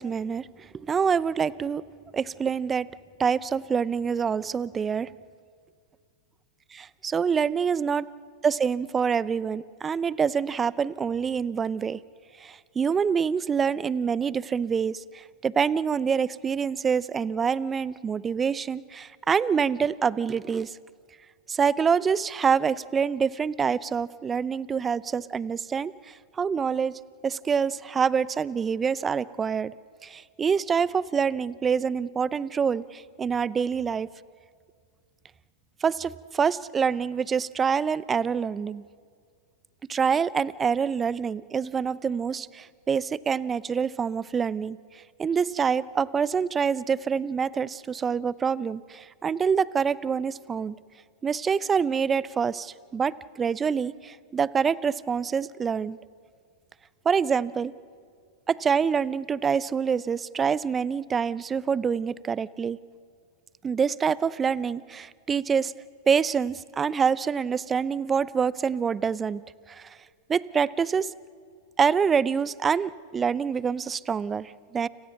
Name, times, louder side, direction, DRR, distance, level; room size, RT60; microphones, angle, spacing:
voice 1, 0.0-1.8 2.1-2.9 3.2-5.1 6.7-8.0 8.4-12.0 12.4-20.8 21.5-29.7 30.0-34.1 35.8-38.9 39.9-50.8 51.2-56.0 57.0-57.7 58.5-62.8 63.6-65.7 66.1-70.0 70.3-71.1 71.8-74.9, right 6 dB, 20° right, 19 dB, 0.6 m, -26 dB
30.0 x 27.0 x 5.9 m, 2.1 s
hypercardioid pair, 100°, 0 cm